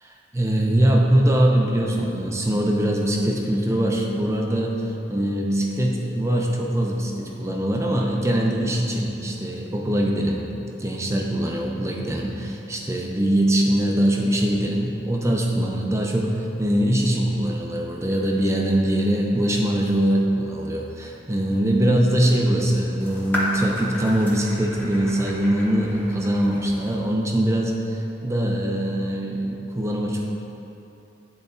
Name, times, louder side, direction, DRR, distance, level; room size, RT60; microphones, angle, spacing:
voice 1, 0.0-4.7 5.1-10.5 10.8-30.2, right 1 dB, 15° right, 0 dB, 0.5 m, -22 dB
sound 1, 23.0-27.0, equal, 10° left, 0.9 m, -33 dB
10.0 x 4.0 x 2.6 m, 3.0 s
head